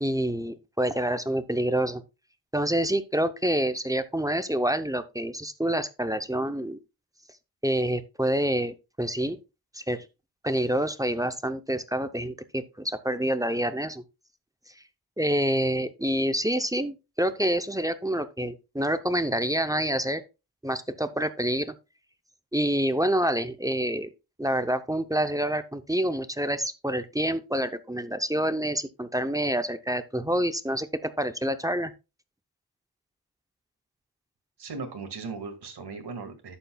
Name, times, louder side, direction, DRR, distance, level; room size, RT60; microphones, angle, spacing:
voice 1, 0.0-2.0 2.5-6.8 7.6-9.4 9.7-10.0 10.4-14.0 15.2-20.2 20.6-21.7 22.5-24.1 24.4-31.9, right 1 dB, 10° right, 0.6 m, -27 dB
voice 2, 34.6-36.6, right 4 dB, 75° right, 2.0 m, -37 dB
11.0 x 8.1 x 2.3 m
wide cardioid pair, 120°, 40 cm